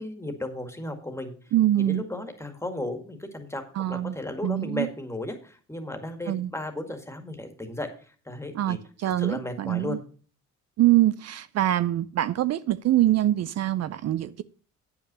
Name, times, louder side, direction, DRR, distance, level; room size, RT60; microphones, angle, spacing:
voice 1, 0.0-8.8 9.0-10.0, left 1 dB, 10° left, 2.0 m, -35 dB
voice 2, 1.5-2.0 3.8-4.2 4.4-4.9 6.3-6.5 8.5-10.0 10.8-14.4, right 13 dB, 60° right, 0.5 m, -24 dB
8.9 x 5.9 x 6.7 m
cardioid pair, 90°, 30 cm